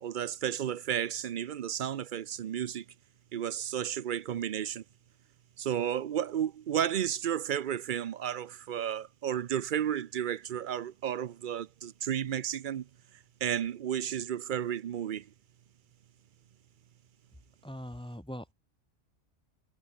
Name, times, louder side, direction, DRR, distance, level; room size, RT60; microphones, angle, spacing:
voice 1, 0.0-2.8 3.3-4.8 5.6-12.9 13.4-15.3, right 10 dB, 55° right, 0.6 m, -32 dB
voice 2, 17.6-18.5, equal, 5° left, 1.2 m, -41 dB
omnidirectional pair, 1.3 m